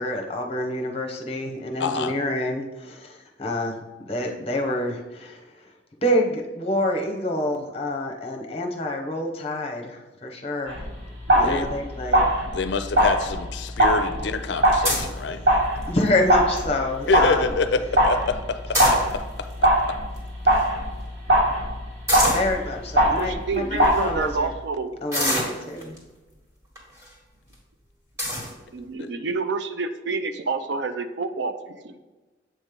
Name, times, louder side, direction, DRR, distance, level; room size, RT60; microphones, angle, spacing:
voice 1, 0.0-3.7 4.1-5.4 6.0-10.8 11.3-12.3 15.9-17.5 22.3-24.5 25.0-26.0, left 1 dB, 30° left, 2 dB, 0.9 m, -27 dB
voice 2, 1.8-2.1 11.4-11.7 12.5-15.4 17.1-20.0 29.0-29.1, left 4 dB, 65° left, 10 dB, 0.4 m, -27 dB
sound 1, 10.7-24.5, right 1 dB, 85° right, 2.2 m, -22 dB
sound 2, 14.8-15.2 15.8-16.1 16.6-16.7 16.9-17.2 18.5-19.4 20.2-20.3 20.5-20.6 22.1-22.5 23.2-23.3 23.8-24.0 25.1-26.0 26.8-27.1 27.5-27.6 28.2-28.5, equal, 15° right, 1.9 m, -25 dB
voice 3, 23.0-24.9 28.7-32.0, right 4 dB, 65° right, 9 dB, 0.5 m, -28 dB
7.8 x 3.1 x 5.1 m, 1.2 s
head